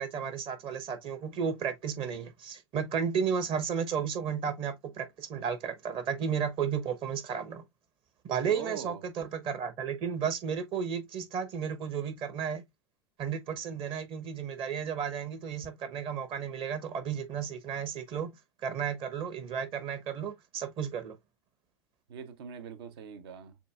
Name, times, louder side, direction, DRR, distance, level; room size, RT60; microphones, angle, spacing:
voice 1, 0.0-7.6 8.2-12.6 13.2-18.3 18.6-21.2, right 7 dB, 40° right, 1.1 m, -33 dB
voice 2, 8.5-9.0 22.1-23.6, right 6 dB, 65° right, 0.8 m, -42 dB
6.7 x 2.7 x 2.3 m
figure-of-eight pair, 90°, 14 cm